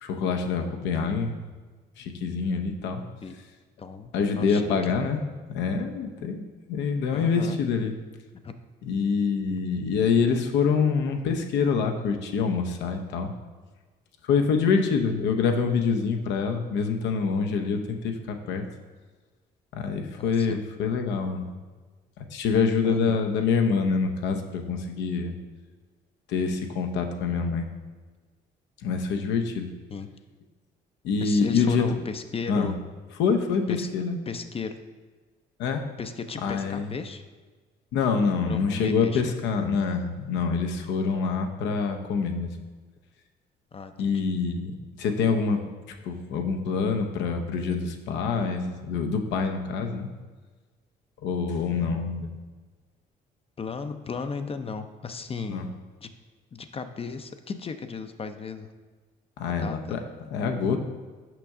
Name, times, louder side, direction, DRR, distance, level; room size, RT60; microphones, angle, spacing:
voice 1, 0.0-1.5 2.0-3.0 4.1-5.2 5.5-6.4 6.7-7.9 8.8-13.3 14.2-18.6 19.7-21.5 22.2-25.4 26.3-27.7 28.8-29.7 31.0-31.9 32.5-32.7 33.2-34.2 35.6-35.9 36.4-36.9 37.9-42.6 44.0-45.6 46.0-50.1 51.2-52.3 55.5-55.7 59.4-60.8, left 5 dB, 80° left, 5 dB, 0.7 m, -26 dB
voice 2, 3.8-4.6 7.1-7.6 8.4-8.5 20.2-20.6 22.8-23.2 29.9-30.1 31.2-32.8 33.7-33.9 34.3-34.8 36.0-37.2 38.5-39.3 43.7-44.2 51.7-52.2 53.6-55.7 56.0-56.1 56.5-58.7 59.5-60.0, left 5 dB, 30° left, 9 dB, 0.5 m, -35 dB
5.9 x 5.3 x 3.6 m, 1.4 s
supercardioid pair, 65°, 18 cm